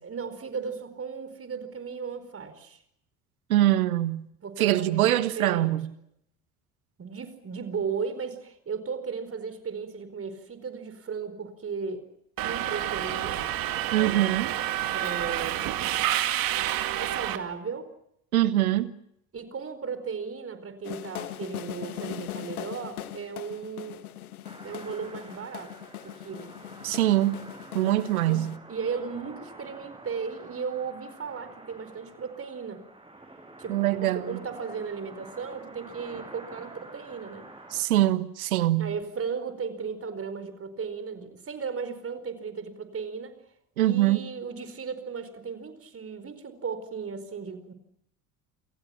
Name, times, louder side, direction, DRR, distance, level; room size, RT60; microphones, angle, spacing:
voice 1, 0.0-2.8 4.4-5.7 7.0-12.0 12.4-13.5 13.9-14.4 14.9-15.7 17.0-17.9 19.3-24.1 24.6-25.7 26.0-26.5 28.2-32.8 33.6-37.5 38.8-43.4 43.8-47.7, right 5 dB, 30° right, 4.7 m, -36 dB
voice 2, 3.5-4.3 4.6-5.9 13.9-14.5 18.3-18.9 26.8-27.4 27.7-28.6 33.7-34.4 37.7-39.0 43.8-44.2, right 14 dB, 75° right, 1.5 m, -23 dB
Subway metro underground, 12.4-17.4, right 13 dB, 50° right, 2.4 m, -29 dB
sound 1, 20.8-28.6, left 12 dB, 75° left, 1.4 m, -40 dB
sound 2, 24.4-37.8, right 2 dB, 10° right, 7.5 m, -48 dB
29.0 x 27.5 x 5.9 m
figure-of-eight pair, 55°, 43 cm